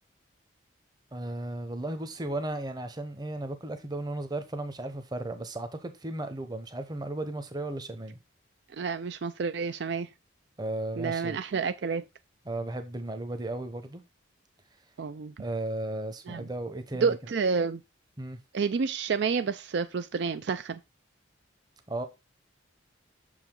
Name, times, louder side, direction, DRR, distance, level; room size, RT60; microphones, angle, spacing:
voice 1, 1.1-8.2 10.6-11.4 12.5-14.0 15.4-17.2 18.2-18.4 21.9-22.0, right 2 dB, 20° right, 0.9 m, -35 dB
voice 2, 8.7-10.1 11.0-12.1 15.0-15.3 16.3-16.5 17.0-17.8 18.5-20.8, right 5 dB, 60° right, 0.4 m, -29 dB
6.7 x 4.9 x 3.8 m
head